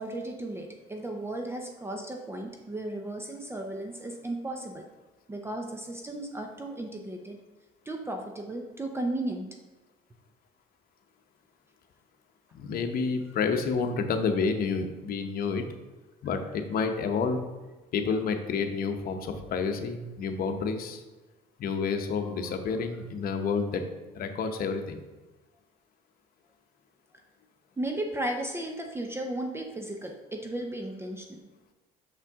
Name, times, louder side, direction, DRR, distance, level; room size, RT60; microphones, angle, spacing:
voice 1, 0.0-4.8 5.3-7.4 7.9-9.5 27.8-31.4, right 1 dB, 15° right, 3 dB, 0.6 m, -35 dB
voice 2, 12.5-15.6 16.2-17.4 17.9-21.0 21.6-23.8 24.1-25.0, left 5 dB, 60° left, 6 dB, 0.8 m, -29 dB
6.0 x 5.6 x 3.6 m, 1.1 s
cardioid pair, 110°, 17 cm